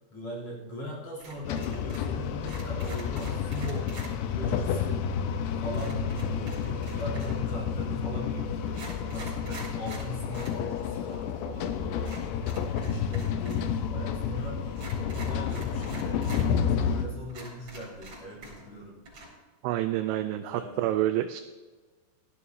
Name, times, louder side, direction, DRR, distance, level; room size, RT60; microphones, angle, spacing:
voice 1, 0.1-3.9 4.2-5.0 5.6-12.4 12.8-14.7 15.0-16.2 16.6-19.0 20.5-20.9, left 1 dB, 40° left, -5 dB, 4.2 m, -40 dB
sound 1, 1.2-2.2 2.4-4.1 5.7-7.5 8.2-8.3 8.7-10.6 10.9-11.0 12.0-13.7 13.9-14.0 14.7-16.5 16.9-17.0 17.3-18.8 19.0-19.3, right 2 dB, 35° right, 4.8 m, -45 dB
sound 2, 1.4-17.1, left 7 dB, 80° left, 2.8 m, -30 dB
voice 2, 19.6-21.4, right 13 dB, 90° right, 9 dB, 2.3 m, -28 dB
16.5 x 13.0 x 2.8 m, 1.3 s
omnidirectional pair, 5.2 m